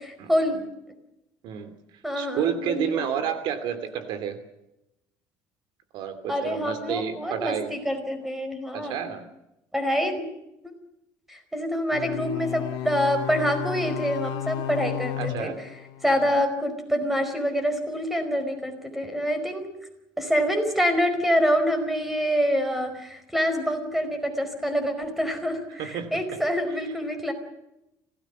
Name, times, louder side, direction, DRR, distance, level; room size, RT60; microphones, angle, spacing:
voice 1, 0.3-0.6 2.0-3.0 6.3-9.0 9.7-10.3 11.3-15.5 16.0-19.7 20.2-27.3, equal, 5° right, 8 dB, 4.9 m, -26 dB
voice 2, 2.1-4.4 5.9-7.7 8.7-9.3 15.2-15.6 25.8-26.4, right 8 dB, 65° right, 11 dB, 2.7 m, -30 dB
sound 1, 11.9-16.4, left 12 dB, 85° left, 1.9 m, -33 dB
26.0 x 18.0 x 7.2 m, 0.88 s
cardioid pair, 135°, 8 cm